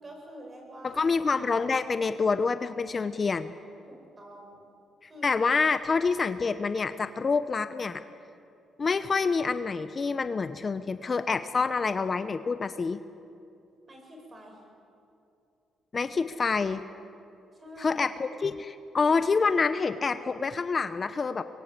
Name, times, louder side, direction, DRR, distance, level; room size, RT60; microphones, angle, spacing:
voice 1, 0.0-1.1 3.9-4.6 5.0-5.3 13.9-14.6 17.5-18.1, equal, 30° right, 1 dB, 7.5 m, -47 dB
voice 2, 0.8-3.5 5.2-8.0 8.8-13.0 15.9-16.8 17.8-21.4, left 4 dB, 35° left, 11 dB, 0.9 m, -27 dB
24.5 x 22.0 x 8.3 m, 2.6 s
cardioid pair, 90°, 0 cm